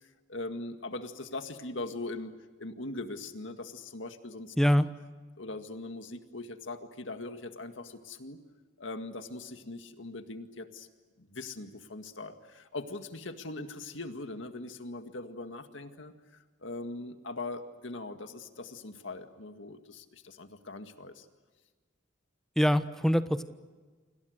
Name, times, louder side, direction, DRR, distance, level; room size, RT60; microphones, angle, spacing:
voice 1, 0.3-4.5 5.4-8.4 8.8-10.9 11.2-16.1 16.6-21.3, left 2 dB, 70° left, 7 dB, 2.0 m, -41 dB
voice 2, 4.6-4.9 22.6-23.4, equal, ahead, 10 dB, 1.1 m, -24 dB
29.5 x 26.5 x 6.6 m, 1.4 s
head